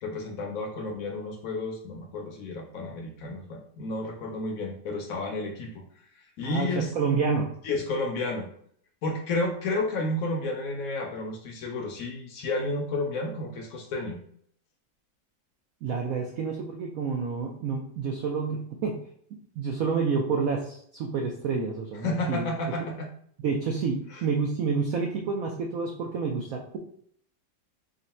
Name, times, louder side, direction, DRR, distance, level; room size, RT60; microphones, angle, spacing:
voice 1, 0.0-5.8 6.4-6.9 7.6-8.5 9.0-14.2 22.0-23.1 24.1-24.2, left 2 dB, 70° left, 2 dB, 0.8 m, -31 dB
voice 2, 6.4-7.5 15.8-19.0 19.6-22.4 23.4-26.8, right 5 dB, 80° right, 1 dB, 0.7 m, -29 dB
3.8 x 2.1 x 4.1 m, 0.63 s
omnidirectional pair, 2.1 m